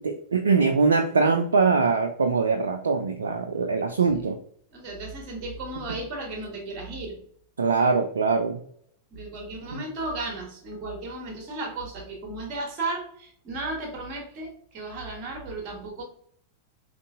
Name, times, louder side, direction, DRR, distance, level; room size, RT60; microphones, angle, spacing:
voice 1, 0.0-4.4 7.6-8.6 9.7-9.8, right 4 dB, 70° right, 5 dB, 0.4 m, -22 dB
voice 2, 4.7-7.2 9.1-16.0, right 2 dB, 40° right, 2 dB, 1.4 m, -34 dB
5.2 x 3.1 x 2.5 m, 0.65 s
figure-of-eight pair, 90°, 0 cm